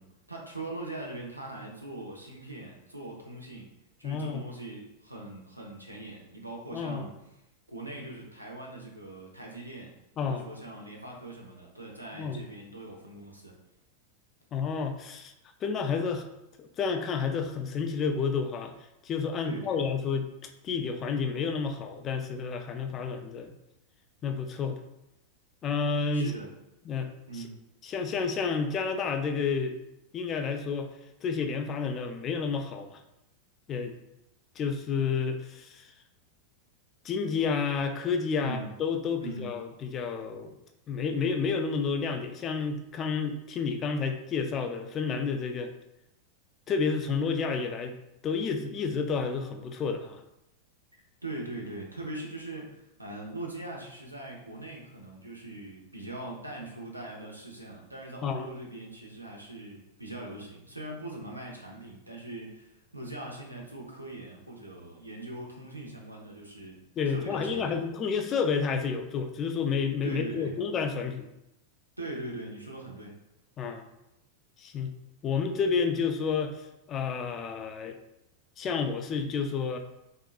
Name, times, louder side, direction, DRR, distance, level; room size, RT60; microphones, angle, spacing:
voice 1, 0.0-3.7 4.0-7.1 7.7-9.9 10.2-13.5 19.4-19.9 26.1-26.5 27.3-27.5 38.4-38.7 39.2-39.5 51.2-66.8 67.1-67.8 70.0-70.5 72.0-73.2, right 2 dB, 85° right, -1 dB, 0.7 m, -41 dB
voice 2, 4.0-4.4 6.7-7.0 10.2-10.4 12.1-12.4 14.5-15.3 15.6-16.3 16.6-18.7 19.0-20.3 20.6-23.6 24.2-24.8 25.6-26.3 26.9-27.4 27.8-29.8 30.1-30.9 31.2-33.0 33.7-33.9 34.6-35.9 37.0-40.5 40.9-45.7 46.7-48.0 48.2-50.2 58.2-58.5 67.0-71.3 73.6-73.9 74.6-74.9 75.2-76.6 76.9-78.0 78.6-79.8, left 5 dB, 30° left, 6 dB, 0.3 m, -30 dB
3.6 x 2.6 x 2.3 m, 0.86 s
figure-of-eight pair, 90°, 0 cm